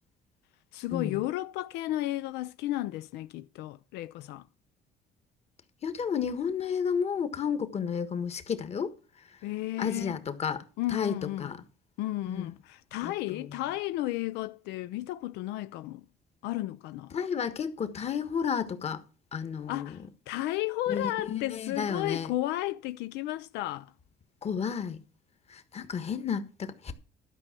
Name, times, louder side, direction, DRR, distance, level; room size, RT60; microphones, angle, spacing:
voice 1, 0.7-4.4 9.4-10.2 10.8-11.5 12.0-16.1 16.4-17.1 19.7-23.9, left 16 dB, 90° left, 0.5 m, -33 dB
voice 2, 5.8-8.9 9.8-10.6 10.9-11.6 12.3-12.5 13.0-13.4 17.1-19.0 19.3-19.9 20.9-22.3 24.4-25.0 25.5-26.9, left 7 dB, 40° left, 1.4 m, -32 dB
12.0 x 5.5 x 7.4 m
cardioid pair, 110°, 17 cm